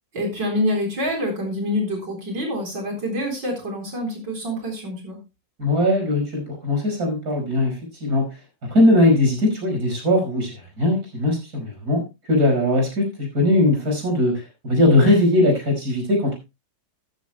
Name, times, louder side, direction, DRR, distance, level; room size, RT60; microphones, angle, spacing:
voice 1, 0.1-5.2, left 1 dB, 85° right, 2 dB, 4.7 m, -26 dB
voice 2, 5.6-8.3 8.7-12.0 12.3-16.4, left 1 dB, 60° right, 2 dB, 5.8 m, -20 dB
14.0 x 13.5 x 2.2 m, 0.25 s
omnidirectional pair, 1.9 m